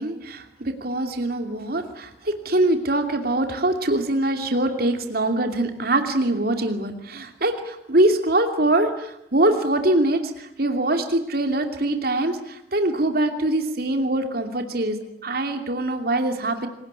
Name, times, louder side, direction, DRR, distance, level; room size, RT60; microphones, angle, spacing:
voice 1, 0.0-15.0 15.2-16.7, right 1 dB, 60° right, 6 dB, 2.7 m, -23 dB
27.0 x 18.5 x 9.7 m, 0.78 s
head